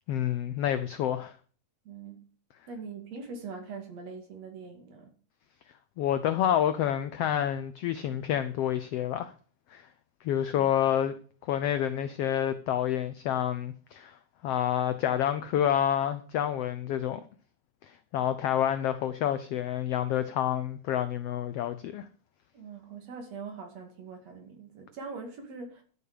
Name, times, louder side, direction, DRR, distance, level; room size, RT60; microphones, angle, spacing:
voice 1, 0.1-1.3 6.0-9.3 9.7-9.9 10.2-11.1 11.5-14.2 14.4-17.2 17.9-22.1, left 10 dB, 80° left, 1.4 m, -28 dB
voice 2, 1.8-2.3 2.7-5.1 10.5-10.7 22.5-25.8, right 4 dB, 60° right, 3.3 m, -42 dB
12.5 x 6.8 x 6.8 m
omnidirectional pair, 3.6 m